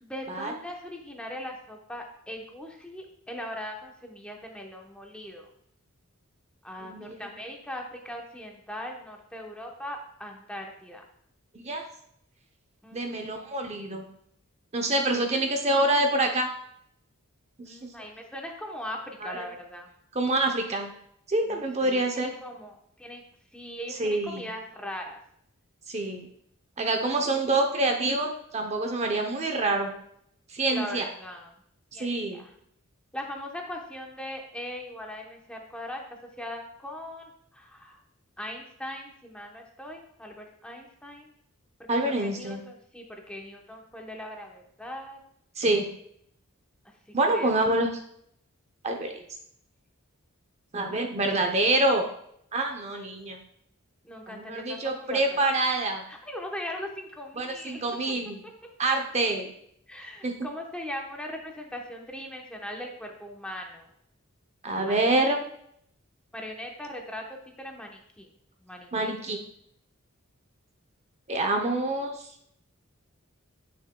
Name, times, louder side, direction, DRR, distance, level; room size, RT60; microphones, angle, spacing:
voice 1, 0.0-5.5 6.6-11.0 12.8-13.3 17.7-19.9 21.5-23.2 23.5-25.2 30.7-31.5 31.9-32.5 33.1-36.0 36.4-38.0 38.4-41.3 41.9-45.2 46.8-47.5 54.0-55.4 56.1-57.8 59.9-63.9 64.8-65.4 66.3-68.3 68.6-69.2, left 1 dB, 5° left, 1 dB, 0.9 m, -40 dB
voice 2, 6.8-7.2 11.5-11.8 12.9-14.0 14.7-16.5 17.6-17.8 19.2-19.5 20.1-20.9 21.3-22.3 24.0-24.4 25.9-26.3 26.8-29.9 30.5-31.1 31.9-32.4 41.9-42.6 45.6-45.9 47.1-47.9 48.8-49.2 50.7-52.0 52.5-53.4 54.3-56.0 57.4-58.4 58.8-59.5 60.2-60.3 64.6-65.4 68.9-69.4 71.3-72.2, right 2 dB, 30° right, 4 dB, 0.7 m, -26 dB
8.9 x 6.4 x 2.2 m, 0.69 s
head